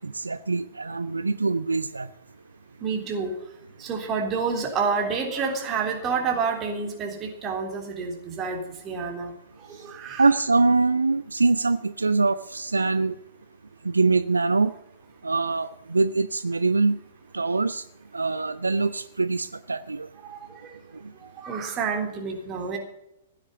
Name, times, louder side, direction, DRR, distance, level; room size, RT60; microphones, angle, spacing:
voice 1, 0.0-2.1 10.2-13.1 13.8-14.7 15.2-17.0 17.3-17.8 18.1-20.1, right 3 dB, 75° right, 15 dB, 0.5 m, -23 dB
voice 2, 2.8-3.3 3.8-9.3 9.7-10.3 20.2-20.4 21.4-22.8, right 5 dB, 25° right, 2 dB, 3.5 m, -28 dB
16.0 x 9.8 x 6.9 m, 0.83 s
figure-of-eight pair, 110°, 0 cm